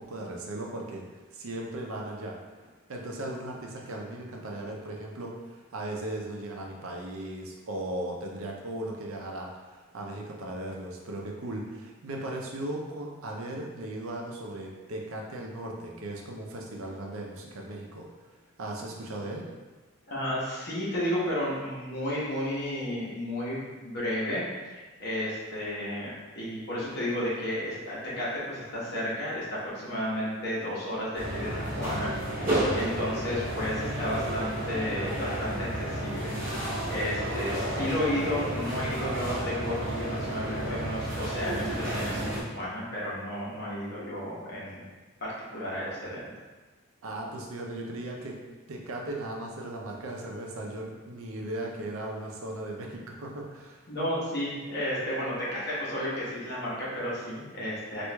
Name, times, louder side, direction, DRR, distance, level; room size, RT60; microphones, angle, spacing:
voice 1, 0.0-2.4 2.9-18.1 18.6-19.5 47.0-48.4 48.7-53.9, right 1 dB, 85° right, 0 dB, 0.5 m, -37 dB
voice 2, 20.1-26.1 26.3-32.1 32.3-36.6 36.9-44.8 45.2-46.2 53.9-58.1, left 1 dB, 50° left, -7 dB, 1.0 m, -32 dB
sound 1, 31.1-42.4, right 1 dB, 40° right, 0.8 m, -31 dB
4.5 x 2.5 x 2.2 m, 1.3 s
head